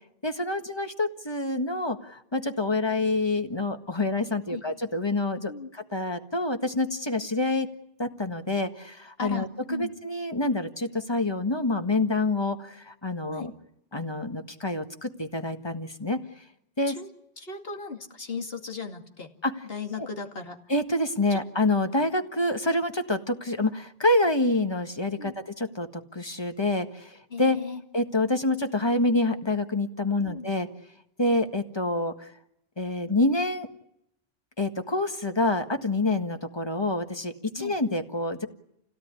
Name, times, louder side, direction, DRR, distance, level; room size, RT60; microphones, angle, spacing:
voice 1, 0.2-7.7 8.0-13.5 13.9-16.2 16.8-17.0 19.4-19.7 20.7-27.6 27.9-30.7 31.2-32.3 32.8-33.7 34.6-38.5, left 2 dB, 25° left, 6 dB, 1.7 m, -27 dB
voice 2, 9.2-9.9 13.3-13.5 17.0-17.1 17.4-19.3 19.7-20.6 25.2-25.3 27.3-27.8 30.2-30.5 37.6-37.7, left 4 dB, 70° left, 4 dB, 2.6 m, -36 dB
29.0 x 17.0 x 9.8 m, 0.81 s
omnidirectional pair, 1.0 m